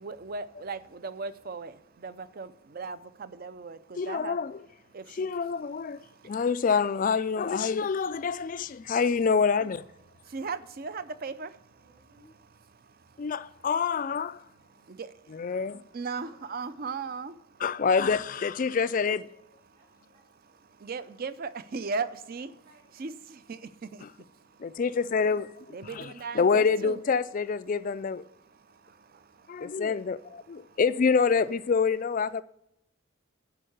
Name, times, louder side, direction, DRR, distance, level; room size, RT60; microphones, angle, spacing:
voice 1, 0.0-4.4 4.9-5.3 10.3-11.6 14.9-15.1 15.9-17.3 20.8-22.5 23.0-24.0 25.7-27.0, right 4 dB, 40° right, 0.5 m, -37 dB
voice 2, 4.0-4.7 5.1-9.8 13.2-14.4 15.3-15.8 17.6-19.2 24.0-24.1 24.6-28.3 29.5-32.4, left 5 dB, 40° left, 0.3 m, -27 dB
voice 3, 11.8-12.3 16.1-17.0 18.8-19.2 19.7-20.6 21.7-22.0 22.3-23.5 26.1-27.2, right 1 dB, 55° right, 3.4 m, -60 dB
11.0 x 4.7 x 7.8 m
head